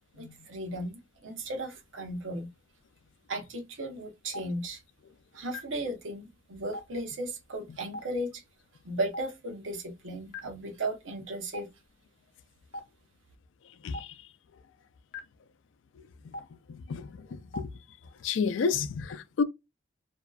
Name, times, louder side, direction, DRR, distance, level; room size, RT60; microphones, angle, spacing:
voice 1, 0.1-2.5 3.3-4.8 5.3-8.4 8.8-11.7, right 1 dB, 90° right, 0.7 m, -36 dB
Stream, 4.3-4.4 5.5-5.6 6.7-6.8 7.9-8.0 9.1-9.2 10.3-10.4 11.5-11.6 12.7-12.8 13.9-14.0 15.1-15.2 16.3-16.4 17.5-17.6, left 2 dB, 50° left, 0.7 m, -39 dB
voice 2, 18.2-19.4, left 5 dB, 75° left, 0.4 m, -28 dB
2.7 x 2.2 x 2.3 m
head